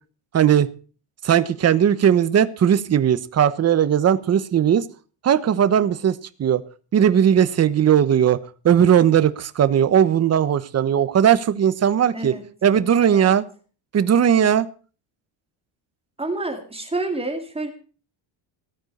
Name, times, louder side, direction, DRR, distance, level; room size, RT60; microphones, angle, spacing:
voice 1, 0.3-0.7 1.2-4.9 5.2-6.6 6.9-8.4 8.6-12.3 12.6-13.4 13.9-14.7, right 9 dB, 30° right, 13 dB, 0.9 m, -18 dB
voice 2, 12.1-12.4 13.1-13.3 16.2-17.7, right 2 dB, 10° right, 4 dB, 2.2 m, -28 dB
17.0 x 9.0 x 6.5 m, 0.38 s
cardioid pair, 165°, 50 cm